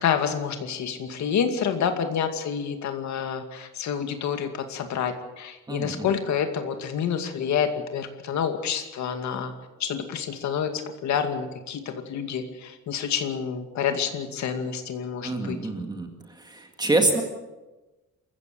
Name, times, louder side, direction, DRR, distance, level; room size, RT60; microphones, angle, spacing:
voice 1, 0.0-9.5 9.8-15.6, left 7 dB, 65° left, 6 dB, 2.3 m, -28 dB
voice 2, 5.7-6.1 15.2-16.1 16.4-17.2, right 2 dB, 15° right, 4 dB, 2.0 m, -26 dB
27.5 x 15.0 x 6.9 m, 1.1 s
cardioid pair, 180°, 31 cm